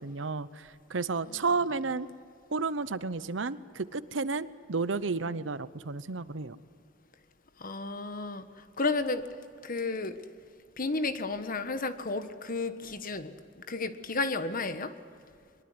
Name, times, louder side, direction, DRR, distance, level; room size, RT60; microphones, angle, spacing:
voice 1, 0.0-2.1 2.5-6.6, right 4 dB, 80° right, 16 dB, 0.9 m, -32 dB
voice 2, 7.6-9.3 9.6-10.2 10.8-14.9, left 3 dB, 50° left, 10 dB, 1.5 m, -33 dB
22.5 x 22.5 x 9.7 m, 2.2 s
head